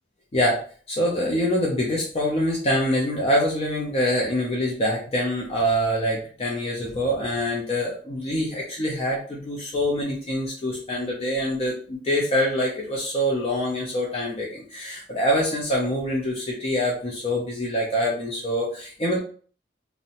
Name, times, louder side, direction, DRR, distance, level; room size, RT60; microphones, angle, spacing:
voice 1, 0.3-0.6 0.9-19.2, equal, 35° left, -3 dB, 0.5 m, -25 dB
2.6 x 2.1 x 2.7 m, 0.43 s
head